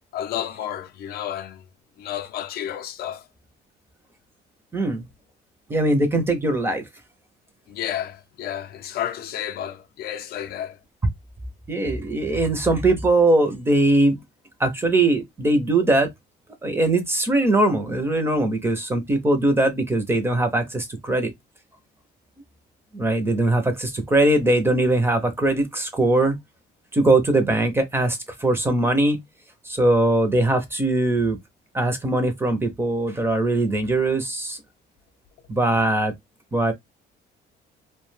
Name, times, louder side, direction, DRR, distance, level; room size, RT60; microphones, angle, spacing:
voice 1, 0.1-1.6 2.0-3.3 7.7-10.8, left 10 dB, 55° left, 0.4 m, -31 dB
voice 2, 4.7-5.0 5.7-6.9 11.7-14.2 14.6-16.1 16.6-21.3 22.9-26.4 26.9-29.2 29.7-31.4 31.7-34.6 35.5-36.1 36.5-36.7, right 2 dB, 15° right, 0.5 m, -21 dB
2.6 x 2.1 x 3.1 m
cardioid pair, 175°, 19 cm